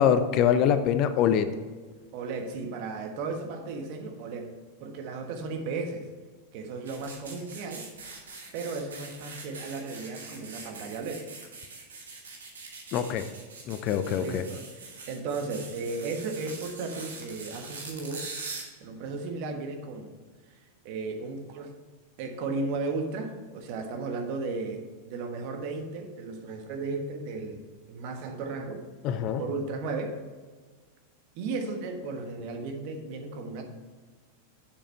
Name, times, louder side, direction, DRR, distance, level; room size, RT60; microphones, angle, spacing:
voice 1, 0.0-1.5 12.9-13.3 13.7-14.4 29.0-29.4, left 8 dB, 40° left, 10 dB, 0.6 m, -24 dB
voice 2, 2.1-4.5 4.8-6.1 6.5-7.9 8.5-11.3 14.2-18.3 18.8-20.1 20.5-20.6 20.8-21.7 22.2-27.6 27.9-28.9 29.4-30.2 31.3-33.6, right 3 dB, 45° right, 4 dB, 1.3 m, -35 dB
sound 1, 6.9-18.6, right 4 dB, 65° right, 1.8 m, -43 dB
7.4 x 6.8 x 4.4 m, 1.4 s
figure-of-eight pair, 90°, 0 cm